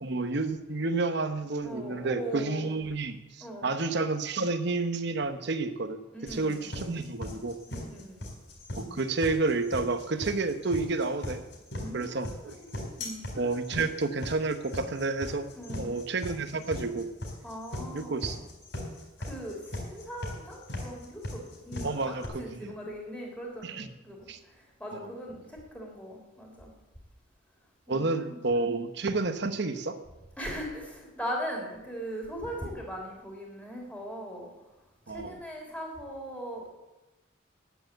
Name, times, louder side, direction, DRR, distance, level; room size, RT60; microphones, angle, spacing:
voice 1, 0.0-7.6 8.8-11.4 11.9-12.6 13.3-17.1 17.9-18.4 21.8-22.7 23.6-23.9 24.3-24.4 24.9-25.1 27.9-30.0 35.1-35.4, right 3 dB, 55° right, 9 dB, 0.9 m, -30 dB
voice 2, 1.6-2.7 3.4-3.7 6.1-6.6 7.7-8.2 11.8-13.2 15.6-15.9 17.4-18.2 19.2-26.7 27.9-28.3 30.4-34.5 35.1-36.7, equal, 5° left, -1 dB, 3.2 m, -39 dB
sound 1, 6.3-22.3, left 1 dB, 55° left, 4.1 m, -38 dB
10.5 x 9.3 x 7.9 m, 1.0 s
head